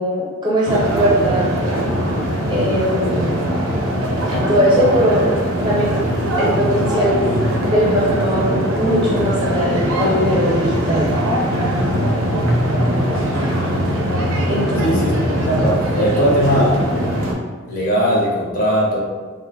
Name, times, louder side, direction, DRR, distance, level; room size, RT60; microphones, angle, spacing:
voice 1, 0.0-1.5 2.5-3.4 4.3-5.3 5.6-6.1 6.4-7.2 7.7-11.1 14.5-15.0, equal, 20° right, -7 dB, 0.6 m, -19 dB
sound 1, 0.7-17.3, equal, 70° right, 0.4 m, -20 dB
voice 2, 14.8-15.1 15.4-16.9 17.7-19.0, equal, 40° left, -4 dB, 0.5 m, -18 dB
2.5 x 2.0 x 2.7 m, 1.4 s
head